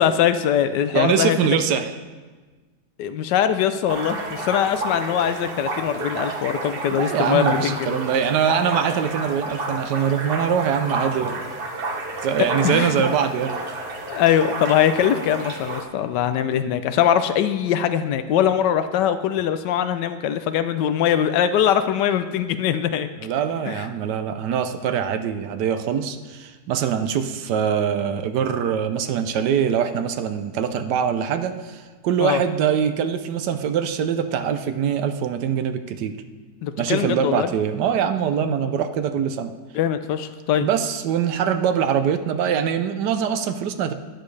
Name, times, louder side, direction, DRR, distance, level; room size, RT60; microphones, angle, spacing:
voice 1, 0.0-1.4 3.0-8.0 12.4-12.9 14.1-23.1 23.7-23.9 32.2-32.4 36.6-37.5 39.7-40.7, left 9 dB, 75° left, 10 dB, 1.2 m, -22 dB
voice 2, 0.9-1.9 6.9-11.5 12.2-13.5 23.2-36.2 36.8-39.5 40.6-43.9, right 8 dB, 75° right, 9 dB, 1.2 m, -23 dB
sound 1, 3.9-15.8, right 2 dB, 40° right, 0.9 m, -30 dB
12.5 x 10.5 x 3.3 m, 1.4 s
omnidirectional pair, 2.0 m